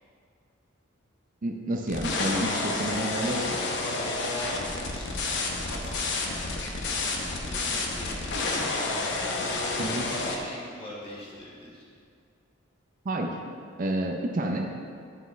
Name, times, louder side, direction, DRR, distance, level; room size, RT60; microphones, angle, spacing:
voice 1, 1.4-3.6 9.8-10.1 13.0-13.4 13.8-14.7, right 1 dB, 45° right, 2 dB, 0.5 m, -29 dB
sound 1, 1.9-10.4, left 3 dB, 60° left, 0.8 m, -30 dB
voice 2, 4.0-9.4 9.9-11.8, left 1 dB, 30° left, -7 dB, 1.8 m, -44 dB
9.6 x 5.6 x 3.2 m, 2.3 s
head